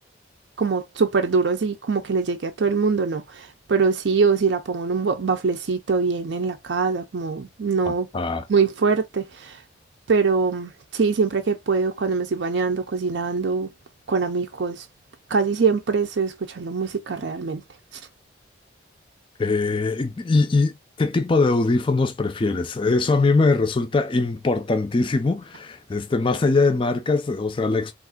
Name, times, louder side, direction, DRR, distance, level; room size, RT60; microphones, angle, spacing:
voice 1, 0.6-8.1 8.5-9.6 10.1-13.7 14.1-14.9 15.3-17.6, right 5 dB, 75° right, 0.5 m, -23 dB
voice 2, 8.1-8.4 19.4-27.9, left 3 dB, 25° left, 0.4 m, -22 dB
3.5 x 2.5 x 2.2 m
head